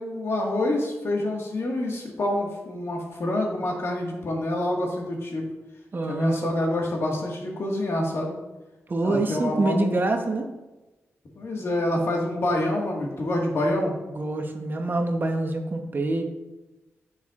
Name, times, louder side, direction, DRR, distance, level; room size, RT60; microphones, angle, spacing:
voice 1, 0.0-5.4 6.1-8.4 9.0-10.0 11.4-13.9, left 1 dB, 60° left, 0 dB, 1.7 m, -27 dB
voice 2, 5.9-6.5 8.9-10.5 14.1-16.2, right 2 dB, 45° right, 4 dB, 0.9 m, -26 dB
9.2 x 5.6 x 2.5 m, 1.1 s
cardioid pair, 60°, 5 cm